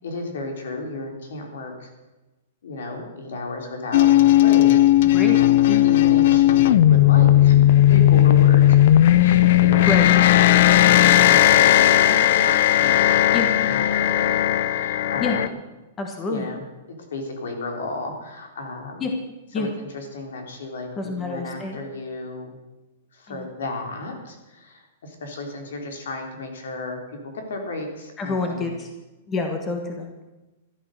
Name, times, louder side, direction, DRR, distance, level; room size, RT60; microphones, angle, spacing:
voice 1, 0.0-1.9 2.6-4.1 4.4-5.2 5.8-8.8 9.2-15.5 16.3-19.0 19.6-22.5 23.1-27.0 27.5-28.7, left 2 dB, 80° left, 3 dB, 3.8 m, -33 dB
sound 1, 3.9-15.5, left 13 dB, 45° left, 0.5 m, -16 dB
voice 2, 9.8-10.1 13.3-13.5 15.2-15.4 16.0-16.5 19.0-19.1 19.5-19.7 21.0-21.8 23.3-23.5 28.2-28.9 29.3-30.3, left 3 dB, 15° left, 3 dB, 1.3 m, -27 dB
13.0 x 12.0 x 6.6 m, 1.1 s
supercardioid pair, 175°, 0 cm